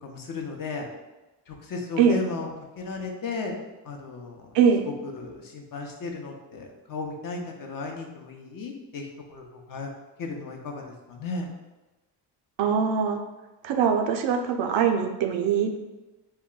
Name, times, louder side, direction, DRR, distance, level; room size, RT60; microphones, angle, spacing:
voice 1, 0.0-0.9 1.5-2.5 2.8-3.6 3.8-4.5 5.0-9.9 10.2-11.5, left 3 dB, 45° left, 1 dB, 0.6 m, -35 dB
voice 2, 4.5-4.9 12.6-13.2 13.6-15.8, right 7 dB, 70° right, 4 dB, 0.5 m, -22 dB
2.2 x 2.1 x 3.7 m, 1.1 s
supercardioid pair, 60°, 47 cm